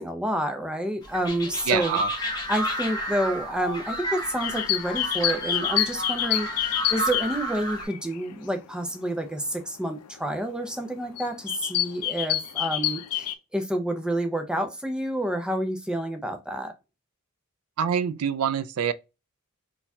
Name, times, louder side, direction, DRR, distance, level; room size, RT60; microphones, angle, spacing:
voice 1, 0.0-2.0 2.5-16.7, right 1 dB, 5° right, 0.5 m, -29 dB
sound 1, 1.0-7.8, equal, 20° left, 1.0 m, -31 dB
voice 2, 1.7-2.1 17.8-18.9, right 7 dB, 75° right, 0.4 m, -25 dB
sound 2, 4.3-8.4 8.8-9.0 10.0-10.1 10.6-10.9 11.2-13.3, left 12 dB, 90° left, 0.5 m, -27 dB
4.4 x 2.3 x 2.7 m
head